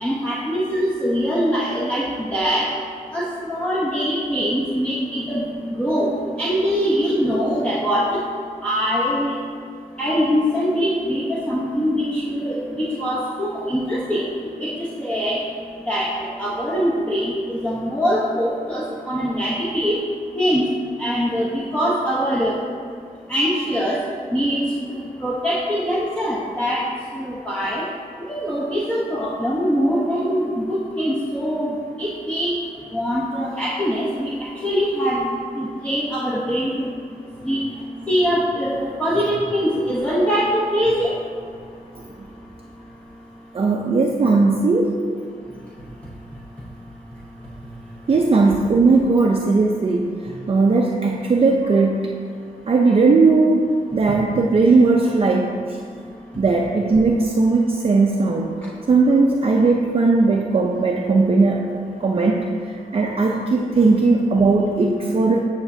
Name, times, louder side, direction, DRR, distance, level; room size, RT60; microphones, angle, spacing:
voice 1, 0.0-2.7 3.1-8.2 8.6-9.4 10.0-14.2 14.6-14.7 15.0-15.4 15.9-16.1 16.4-20.0 20.4-20.6 21.0-22.6 23.3-24.0 24.3-24.6 24.9-26.9 27.1-27.8 28.3-31.7 32.0-32.5 32.9-34.3 34.6-36.9 37.4-37.6 38.1-41.1 53.9-54.0, equal, 10° left, -6 dB, 0.9 m, -22 dB
voice 2, 43.5-44.9 48.1-52.1 52.7-55.8 56.4-58.5 58.9-65.4, right 3 dB, 40° right, -1 dB, 0.5 m, -18 dB
9.3 x 5.9 x 2.7 m, 2.3 s
cardioid pair, 85°, 15 cm